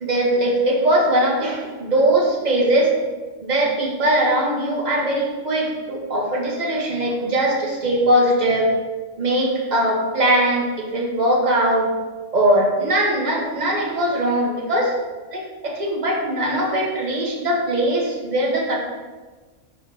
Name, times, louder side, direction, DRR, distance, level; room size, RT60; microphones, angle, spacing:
voice 1, 0.0-2.9 3.4-8.7 9.2-11.9 12.3-14.9 15.3-18.8, right 1 dB, 35° right, -2 dB, 1.5 m, -20 dB
5.8 x 4.9 x 6.4 m, 1.3 s
omnidirectional pair, 1.3 m